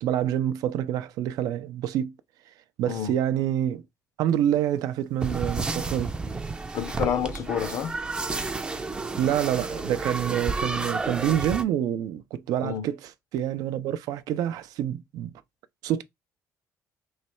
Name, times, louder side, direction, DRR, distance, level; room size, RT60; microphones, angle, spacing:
voice 1, 0.0-2.1 2.8-3.8 4.2-6.1 9.2-15.3 15.8-16.0, right 11 dB, 85° right, 0.4 m, -27 dB
sound 1, 5.2-11.6, right 3 dB, 15° right, 0.4 m, -31 dB
voice 2, 6.7-8.0 12.6-12.9, left 8 dB, 55° left, 0.5 m, -29 dB
3.2 x 3.1 x 4.3 m
cardioid pair, 160°, 6 cm